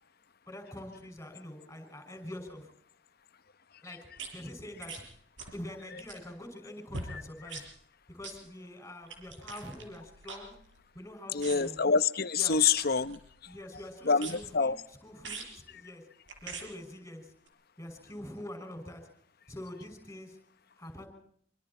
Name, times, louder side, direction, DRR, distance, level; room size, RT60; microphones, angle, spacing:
voice 1, 0.5-2.7 3.8-4.0 4.3-5.0 5.5-7.7 8.1-10.6 10.9-11.8 12.4-12.6 13.5-14.7 15.0-16.0 16.4-17.3 17.8-19.0 19.5-20.4 20.8-21.1, left 1 dB, 15° left, 6 dB, 6.4 m, -45 dB
sound 1, 4.2-4.3 4.8-5.0 5.4-5.6 5.9-6.3 6.9-7.1 7.5-7.7 8.2-8.4 9.1-11.0 11.4-11.8 12.5-13.4 14.1-14.6 15.2-15.6 16.3-16.7 17.5-17.6, right 3 dB, 80° right, 6.3 m, -44 dB
voice 2, 11.3-13.5 14.0-14.8, left 5 dB, 55° left, 12 dB, 1.0 m, -27 dB
25.5 x 25.5 x 4.5 m, 0.65 s
head